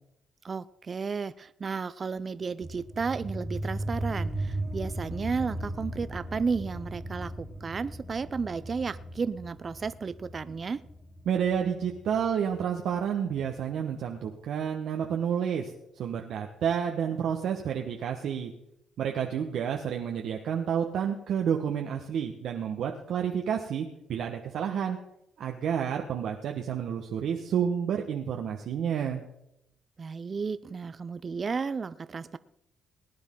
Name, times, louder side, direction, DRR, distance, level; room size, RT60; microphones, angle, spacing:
voice 1, 0.4-10.8 30.0-32.4, right 5 dB, 40° right, 16 dB, 0.4 m, -33 dB
sound 1, 2.6-13.7, right 1 dB, 10° left, 2.7 m, -37 dB
voice 2, 11.3-18.5 19.0-25.0 25.4-29.2, right 8 dB, 75° right, 2 dB, 1.1 m, -30 dB
19.0 x 9.8 x 3.7 m, 0.82 s
cardioid pair, 90°, 0 cm